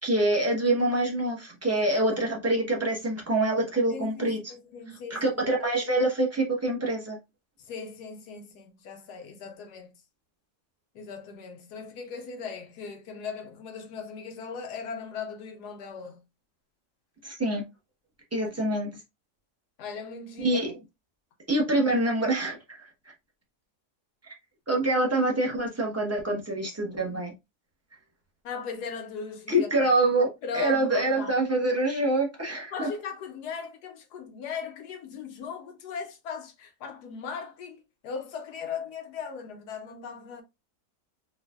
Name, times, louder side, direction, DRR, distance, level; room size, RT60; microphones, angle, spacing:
voice 1, 0.0-4.5 5.1-7.2 17.2-17.6 18.3-18.9 20.4-20.7 21.5-22.9 24.7-27.3 29.5-30.3 30.5-32.9, right 1 dB, 15° right, 0.7 m, -25 dB
voice 2, 1.7-2.1 3.9-5.4 7.7-9.9 10.9-16.2 19.8-20.6 28.4-29.9 30.4-31.4 32.7-40.4, left 6 dB, 80° left, 1.3 m, -38 dB
4.2 x 2.4 x 2.3 m
omnidirectional pair, 1.7 m